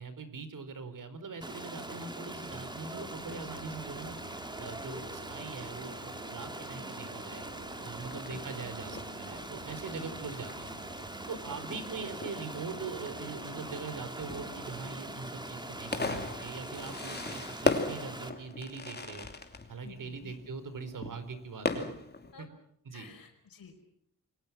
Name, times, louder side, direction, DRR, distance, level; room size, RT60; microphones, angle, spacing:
voice 1, 0.0-4.2 4.6-7.5 7.8-10.7 11.3-19.3 19.7-21.9 22.9-23.1, right 4 dB, 65° right, 11 dB, 4.4 m, -42 dB
Stream, 1.4-18.3, right 1 dB, 10° right, 2.7 m, -42 dB
sound 1, 2.0-17.5, right 6 dB, 90° right, 2.0 m, -52 dB
Fireworks, 7.4-22.3, left 3 dB, 30° left, 2.9 m, -39 dB
voice 2, 8.1-8.5 9.9-10.3 11.3-11.6 19.8-20.4 22.3-22.5 22.9-23.8, left 6 dB, 75° left, 2 dB, 5.2 m, -52 dB
29.0 x 23.0 x 6.1 m, 0.67 s
wide cardioid pair, 135°, 35 cm